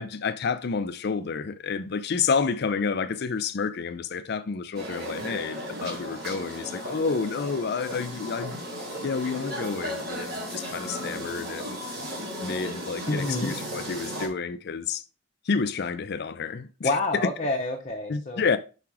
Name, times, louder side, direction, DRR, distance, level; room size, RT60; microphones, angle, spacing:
voice 1, 0.0-8.6 9.0-11.8 12.4-15.0 15.4-17.0 18.1-18.6, left 5 dB, 50° left, 0.4 m, -29 dB
sound 1, 4.7-14.3, equal, 50° right, 2.5 m, -35 dB
voice 2, 13.1-13.6 16.8-18.5, left 2 dB, 35° left, 0.8 m, -28 dB
5.9 x 4.9 x 4.8 m
head